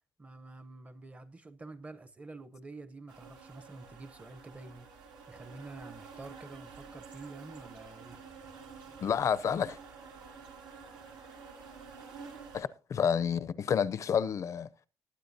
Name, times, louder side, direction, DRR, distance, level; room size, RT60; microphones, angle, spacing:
voice 1, 0.2-4.9 5.3-8.2, right 3 dB, 20° right, 0.7 m, -48 dB
sound 1, 3.1-12.6, right 5 dB, 75° right, 2.6 m, -50 dB
voice 2, 9.0-9.8 12.5-14.7, left 7 dB, 45° left, 0.5 m, -29 dB
19.5 x 9.4 x 2.7 m
cardioid pair, 135°, 7 cm